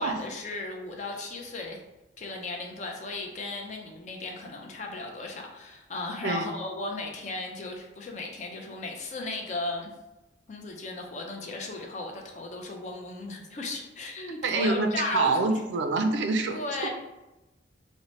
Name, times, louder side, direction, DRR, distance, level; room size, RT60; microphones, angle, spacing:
voice 1, 0.0-1.8 2.2-9.9 10.5-15.6 16.5-16.9, left 2 dB, 40° left, 1 dB, 0.4 m, -36 dB
voice 2, 14.4-16.9, right 3 dB, 70° right, 6 dB, 0.3 m, -26 dB
2.8 x 2.1 x 3.0 m, 0.99 s
head